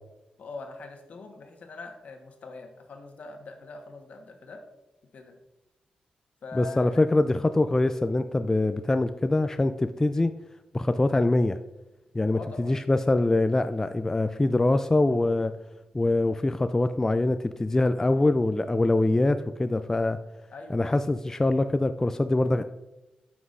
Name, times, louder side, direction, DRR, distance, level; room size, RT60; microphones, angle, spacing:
voice 1, 0.4-4.6 5.1-5.3 6.4-7.1 12.3-12.8 20.5-20.9 22.4-22.6, left 3 dB, 65° left, 4 dB, 1.2 m, -42 dB
voice 2, 6.5-10.3 10.7-11.6 12.1-15.5 15.9-20.2 20.7-22.6, left 2 dB, 20° left, 10 dB, 0.3 m, -24 dB
9.3 x 6.0 x 2.5 m, 0.96 s
cardioid pair, 70°, 3 cm